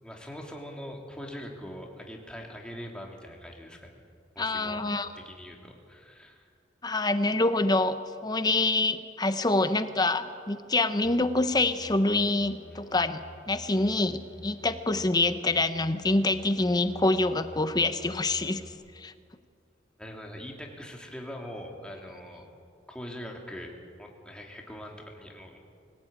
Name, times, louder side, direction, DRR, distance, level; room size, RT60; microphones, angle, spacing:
voice 1, 0.0-3.9 4.3-4.8 5.1-6.5 20.0-22.5 22.9-23.7 24.0-25.6, equal, 5° left, 0 dB, 2.8 m, -42 dB
voice 2, 4.4-5.1 6.8-8.0 8.2-18.6 19.0-19.1, left 2 dB, 20° left, 10 dB, 0.8 m, -26 dB
sound 1, 11.0-18.7, left 1 dB, 75° right, 5.5 m, -49 dB
23.5 x 16.5 x 8.8 m, 2.3 s
head